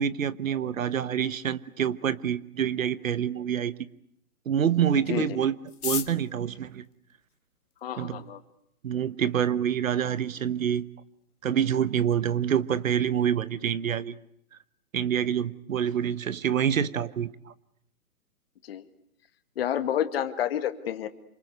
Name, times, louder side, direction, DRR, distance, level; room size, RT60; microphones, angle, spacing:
voice 1, 0.0-3.9 4.4-5.6 5.8-6.9 8.0-8.2 8.8-10.8 11.4-14.2 14.9-17.5, right 8 dB, 60° right, 1.3 m, -27 dB
sound 1, 5.6-7.9 8.7-8.8 9.0-9.1 9.4-9.9 10.2-10.3 10.5-10.9 11.2-11.4 11.7-12.0, left 7 dB, 80° left, 1.7 m, -36 dB
voice 2, 7.8-8.4 18.7-18.8 19.6-21.1, left 10 dB, 40° left, 1.9 m, -29 dB
28.0 x 25.5 x 8.1 m
hypercardioid pair, 150°, 45 cm